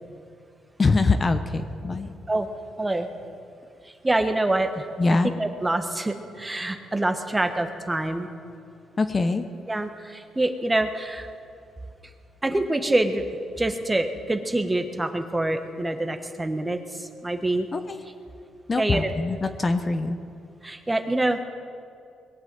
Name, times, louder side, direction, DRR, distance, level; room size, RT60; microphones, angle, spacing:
voice 1, 0.8-2.1 5.0-5.3 9.0-9.5 17.7-18.0 18.7-20.2, left 3 dB, 30° left, 8 dB, 0.8 m, -23 dB
voice 2, 4.0-4.9 5.4-8.3 9.7-11.3 12.4-13.2 13.6-17.7 18.8-19.1 20.6-21.4, right 2 dB, 15° right, 7 dB, 1.2 m, -25 dB
Piano, 7.4-8.7, left 1 dB, 30° right, 2.5 m, -48 dB
21.0 x 8.3 x 7.7 m, 2.5 s
cardioid pair, 90°, 0 cm